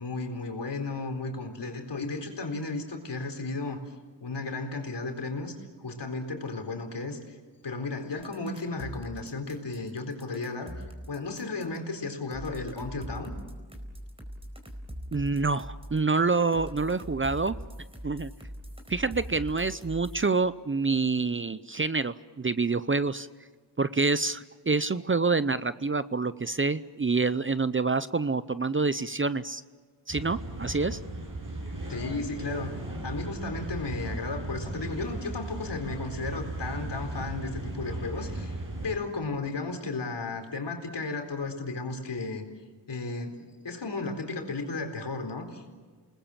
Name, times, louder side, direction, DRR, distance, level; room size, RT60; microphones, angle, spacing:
voice 1, 0.0-3.8 4.2-7.4 7.6-10.7 11.1-13.3 31.9-32.8 33.0-38.6 38.8-42.5 42.9-45.7, left 3 dB, 65° left, 5 dB, 4.2 m, -34 dB
sound 1, 8.2-11.8 12.3-16.0 16.5-20.3, equal, 15° right, 4.4 m, -41 dB
voice 2, 15.1-17.6 18.0-18.3 18.9-23.3 23.8-29.6 30.1-31.0, right 4 dB, 30° right, 15 dB, 0.7 m, -27 dB
sound 2, 30.1-39.0, right 2 dB, 45° right, 7.3 m, -36 dB
29.0 x 20.0 x 7.5 m, 1.5 s
cardioid pair, 60°, 44 cm